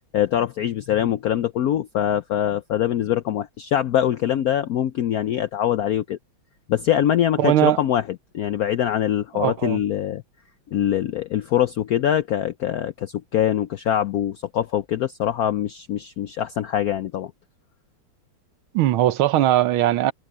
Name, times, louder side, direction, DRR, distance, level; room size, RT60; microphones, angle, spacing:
voice 1, 0.1-6.2 6.7-8.0 8.3-10.2 10.7-17.3, left 10 dB, 75° left, 0.8 m, -23 dB
voice 2, 7.4-7.8 9.4-9.8 18.7-20.1, right 13 dB, 90° right, 1.7 m, -19 dB
omnidirectional pair, 2.2 m